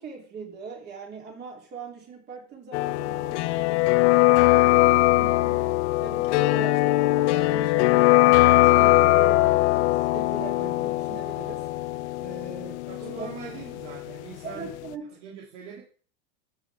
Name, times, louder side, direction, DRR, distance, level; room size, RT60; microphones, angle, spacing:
voice 1, 0.0-5.6 6.0-11.6 12.2-13.3 14.4-15.1, right 5 dB, 30° right, 0 dB, 3.1 m, -40 dB
sound 1, 2.7-14.5 14.7-14.8, left 18 dB, 75° left, 0.5 m, -21 dB
voice 2, 12.9-14.7 15.2-15.8, right 7 dB, 80° right, -3 dB, 2.9 m, -42 dB
12.5 x 8.1 x 3.5 m, 0.43 s
supercardioid pair, 155°, 35 cm